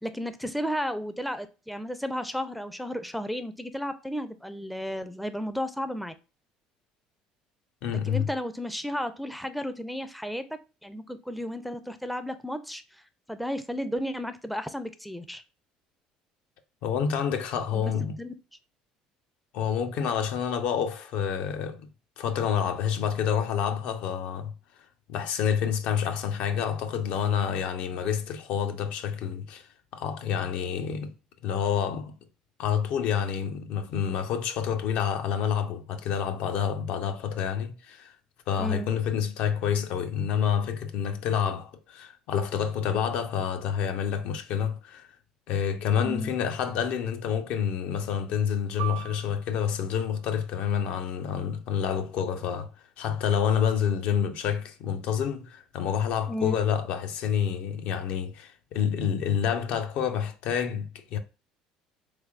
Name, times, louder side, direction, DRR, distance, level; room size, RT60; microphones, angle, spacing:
voice 1, 0.0-6.1 8.0-10.4 10.8-13.0 13.3-15.4 17.7-18.3 38.6-38.9 46.0-46.3 56.3-56.5, equal, ahead, 0.4 m, -33 dB
voice 2, 7.8-8.3 16.8-18.2 19.5-21.9 22.2-24.5 25.1-29.7 29.9-31.1 31.4-32.2 32.6-38.1 38.5-45.1 45.5-52.7 53.0-61.2, left 8 dB, 70° left, 0.6 m, -28 dB
Piano, 48.8-53.8 54.2-54.3 55.1-55.5, right 13 dB, 70° right, 0.5 m, -43 dB
3.5 x 3.3 x 2.4 m
supercardioid pair, 90°, 2 cm